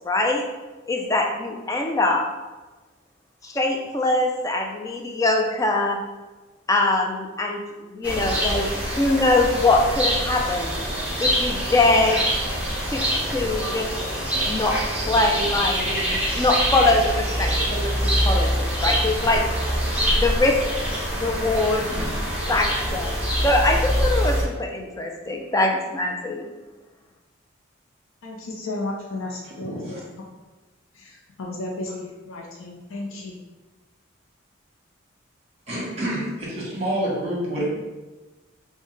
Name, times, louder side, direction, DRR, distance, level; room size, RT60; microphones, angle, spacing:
voice 1, 0.0-0.4 0.9-2.2 3.4-6.0 6.7-7.6 7.9-10.8 11.2-12.2 12.9-13.0 13.3-13.9 14.5-19.4 20.2-20.6 21.2-22.0 22.5-23.1 23.4-26.4, left 2 dB, 15° left, 2 dB, 0.3 m, -23 dB
sound 1, 8.0-24.4, equal, 5° right, 0.9 m, -25 dB
voice 2, 28.2-30.0 30.9-33.4, left 2 dB, 85° left, -2 dB, 0.5 m, -33 dB
voice 3, 35.7-37.6, right 1 dB, 30° right, -5 dB, 1.2 m, -27 dB
5.3 x 2.1 x 3.2 m, 1.2 s
head